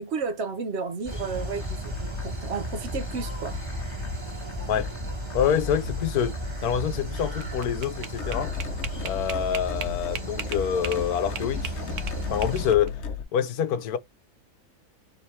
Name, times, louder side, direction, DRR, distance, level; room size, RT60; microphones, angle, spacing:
voice 1, 0.0-3.6, right 5 dB, 55° right, 0.9 m, -32 dB
sound 1, 1.0-12.7, right 1 dB, 20° right, 1.3 m, -35 dB
sound 2, 1.3-13.2, left 5 dB, 50° left, 1.1 m, -37 dB
voice 2, 5.3-6.4 6.6-8.6 9.0-13.0 13.3-14.0, left 9 dB, 80° left, 1.2 m, -26 dB
sound 3, 7.2-11.0 11.4-12.9, right 7 dB, 75° right, 1.2 m, -36 dB
4.4 x 3.4 x 3.2 m
omnidirectional pair, 1.6 m